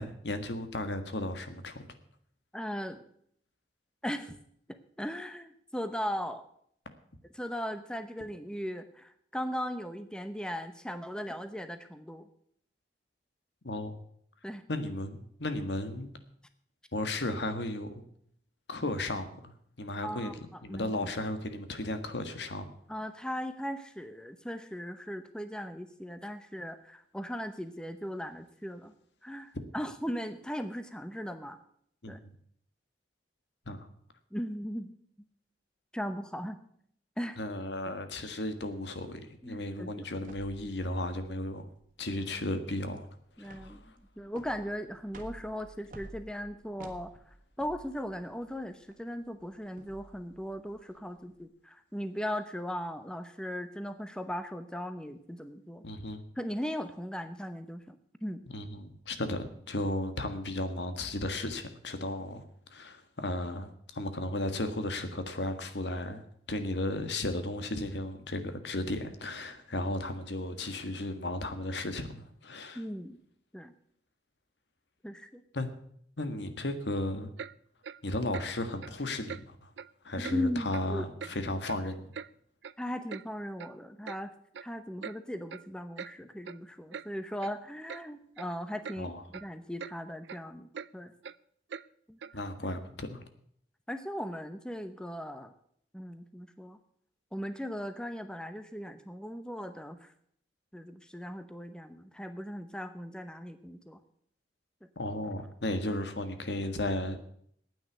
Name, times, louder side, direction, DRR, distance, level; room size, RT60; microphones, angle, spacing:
voice 1, 0.0-1.9 13.6-14.0 14.7-16.1 16.9-18.1 18.7-19.5 19.8-20.3 20.6-22.6 32.0-32.3 33.7-33.9 37.4-41.7 42.0-43.1 43.4-43.9 55.8-56.2 58.5-62.4 62.7-66.2 66.5-72.8 75.5-75.7 76.2-77.3 78.0-79.7 80.0-82.1 89.0-89.2 92.3-93.2 104.9-107.2, left 1 dB, 80° left, 9 dB, 1.6 m, -35 dB
voice 2, 2.5-3.0 4.0-4.4 4.7-6.4 7.3-12.3 14.4-14.6 20.0-20.9 22.9-28.9 29.2-31.6 32.1-32.2 34.3-34.9 35.9-36.6 37.2-37.4 39.4-40.1 43.4-47.1 47.6-55.8 56.4-58.4 72.7-73.2 73.5-73.7 75.0-75.4 80.2-81.1 82.8-84.3 84.6-91.1 92.1-92.2 93.9-95.5 95.9-96.8 97.3-100.1 100.7-104.0, equal, 5° left, 9 dB, 0.8 m, -38 dB
sound 1, 40.2-51.4, right 1 dB, 50° right, 1.7 m, -53 dB
Clock, 77.4-77.5 77.8-78.0 78.3-78.5 78.8-78.9 79.3-79.4 79.8-79.9 80.2-80.4 80.7-80.9 81.2-81.3 81.7-82.3 82.6-82.7 83.1-83.2 83.6-83.7 84.1-84.2 84.5-84.7 85.0-85.2 85.5-85.7 86.0-86.1 86.4-86.6 86.9-87.1 87.4-87.5 87.9-88.0 88.4-88.5 88.8-89.0 89.3-89.5 89.8-90.0 90.2-90.4 90.7-90.9 91.2-91.4 91.7-91.9 92.2-92.3, right 6 dB, 80° right, 0.4 m, -42 dB
9.6 x 9.1 x 9.5 m, 0.67 s
head